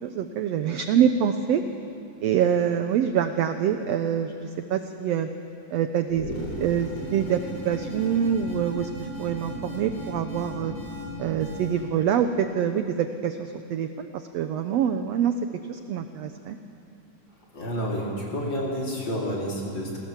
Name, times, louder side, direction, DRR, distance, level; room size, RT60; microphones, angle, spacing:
voice 1, 0.0-1.6 2.2-5.3 5.7-7.4 7.6-10.7 11.2-15.3 15.7-16.6, right 8 dB, 75° right, 8 dB, 1.5 m, -25 dB
sound 1, 6.1-11.8, equal, 50° left, 8.8 m, -36 dB
voice 2, 17.5-20.0, equal, 35° left, -3 dB, 4.7 m, -29 dB
29.5 x 18.0 x 7.4 m, 2.7 s
omnidirectional pair, 3.8 m